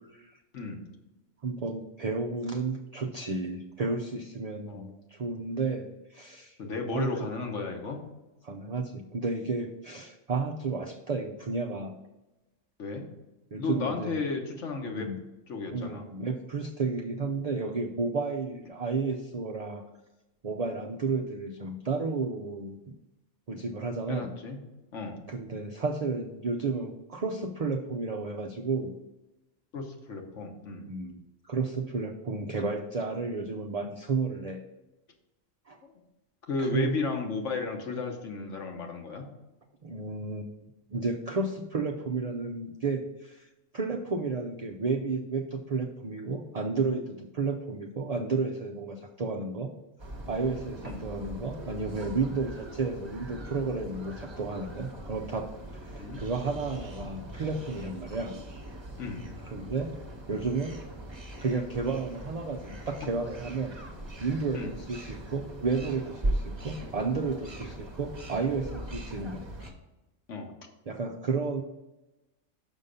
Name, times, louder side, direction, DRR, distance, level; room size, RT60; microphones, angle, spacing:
voice 1, 0.5-0.9 4.7-4.9 6.6-8.1 12.8-13.1 13.6-15.1 15.5-16.0 24.1-24.6 24.9-25.2 29.7-30.9 35.8-35.9 36.5-39.3 50.8-51.0 56.0-56.2 59.0-59.3 64.5-64.7 70.3-70.5, left 4 dB, 70° left, 3 dB, 1.4 m, -34 dB
voice 2, 1.4-6.6 6.9-7.3 8.4-12.0 13.5-14.2 14.8-15.2 15.7-19.8 20.4-22.8 23.5-24.3 25.3-28.9 30.9-31.2 31.5-34.6 35.7-35.8 36.6-36.9 39.8-40.6 40.9-43.5 43.7-49.7 50.3-55.5 55.7-58.3 59.4-60.0 60.3-60.8 61.4-63.7 64.2-69.4 70.9-71.6, right 4 dB, 50° right, 3 dB, 0.4 m, -32 dB
sound 1, 50.0-69.7, right 1 dB, 25° right, 0.9 m, -40 dB
6.3 x 5.5 x 5.2 m, 1.0 s
omnidirectional pair, 1.3 m